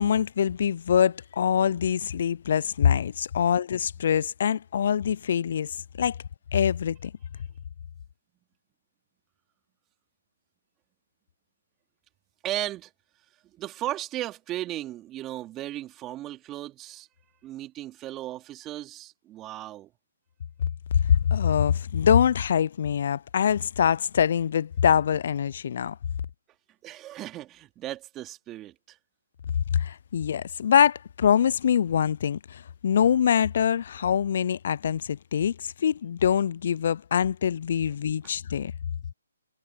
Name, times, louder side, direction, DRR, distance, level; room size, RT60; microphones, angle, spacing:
voice 1, 0.0-6.2 6.5-7.1 20.9-26.0 29.7-38.7, left 8 dB, 55° left, 0.4 m, -24 dB
voice 2, 12.4-12.9 13.6-17.1 17.4-19.9 26.8-29.0, right 14 dB, 20° right, 3.5 m, -36 dB
hypercardioid pair, 145°, 0 cm